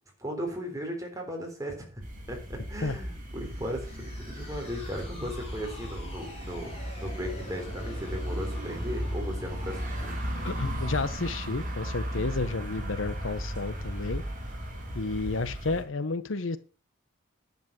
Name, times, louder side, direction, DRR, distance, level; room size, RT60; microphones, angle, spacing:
voice 1, 0.2-2.0 2.3-6.7 7.0-10.1, equal, 15° right, 4.0 m, -36 dB
sound 1, 2.0-15.8, equal, 40° right, 5.1 m, -36 dB
sound 2, 3.4-10.8, left 1 dB, 30° left, 4.6 m, -48 dB
voice 2, 10.4-14.2 14.9-16.6, left 3 dB, 75° left, 0.9 m, -31 dB
10.5 x 8.2 x 6.2 m
head